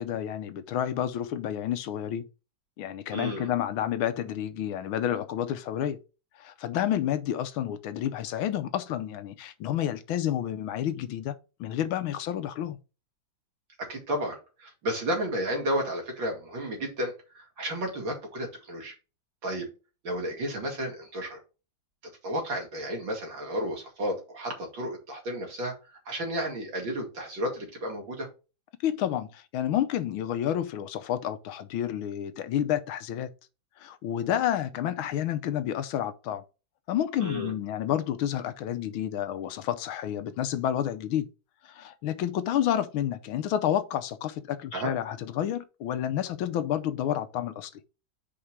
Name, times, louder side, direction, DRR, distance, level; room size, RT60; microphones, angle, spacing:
voice 1, 0.0-2.2 2.8-6.0 6.4-11.3 11.6-12.8 28.8-33.3 33.8-36.4 36.9-41.3 41.6-47.7, left 10 dB, 85° left, 1.6 m, -30 dB
voice 2, 3.1-3.5 13.8-18.9 19.4-19.7 20.0-21.4 22.2-28.3 37.2-37.5 44.7-44.9, equal, 65° right, 2.9 m, -32 dB
5.1 x 4.8 x 5.9 m
omnidirectional pair, 2.2 m